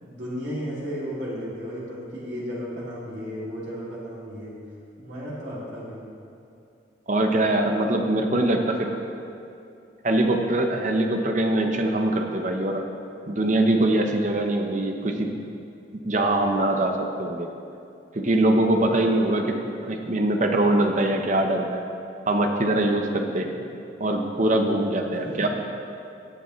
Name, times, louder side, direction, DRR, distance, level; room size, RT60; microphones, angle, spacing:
voice 1, 0.0-4.5 5.0-6.0 23.3-23.6 25.1-25.5, equal, 70° right, -7 dB, 2.7 m, -34 dB
voice 2, 7.1-8.9 10.0-12.8 13.3-15.3 16.0-17.5 18.1-19.6 19.8-21.8 22.3-23.5 24.0-25.5, right 1 dB, 45° right, 3 dB, 0.9 m, -23 dB
17.5 x 6.9 x 3.2 m, 2.6 s
head